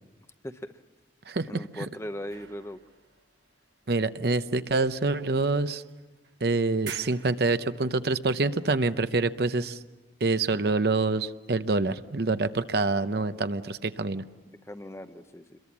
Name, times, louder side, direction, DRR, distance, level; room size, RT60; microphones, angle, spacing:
voice 1, 0.4-0.8 1.5-2.8 14.6-15.6, equal, 15° left, 10 dB, 0.7 m, -39 dB
voice 2, 1.3-1.9 3.9-5.8 6.4-9.8 10.2-14.2, right 3 dB, 60° right, 11 dB, 0.7 m, -26 dB
sound 1, 2.3-4.2 5.0-5.1 5.8-6.4 6.7-8.3, right 8 dB, 75° right, 1.2 m, -47 dB
28.0 x 22.0 x 7.3 m, 1.2 s
head